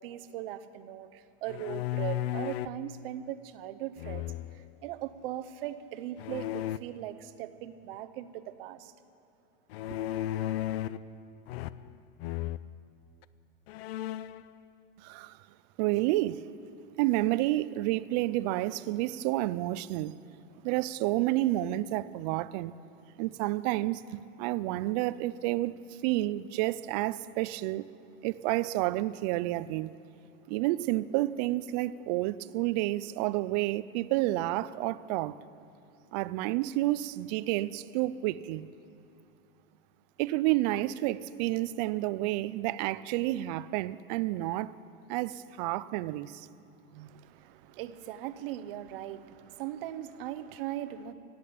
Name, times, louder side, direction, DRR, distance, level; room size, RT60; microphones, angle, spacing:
voice 1, 0.0-4.2 4.8-8.9 9.9-10.0 46.9-51.1, right 12 dB, 65° right, 0.8 m, -39 dB
sound 1, 1.5-2.8 4.0-4.7 6.2-6.8 9.7-11.1 11.5-11.9 12.2-12.6 13.2-13.3 13.7-14.4, left 13 dB, 90° left, 0.5 m, -34 dB
voice 2, 15.0-15.3 15.8-16.4 17.0-20.2 20.6-22.7 23.2-25.7 26.0-27.9 28.2-29.9 30.5-35.4 36.1-38.7 40.2-44.7 45.1-46.5, right 17 dB, 45° right, 0.4 m, -30 dB
16.5 x 8.5 x 8.6 m
supercardioid pair, 155°, 30 cm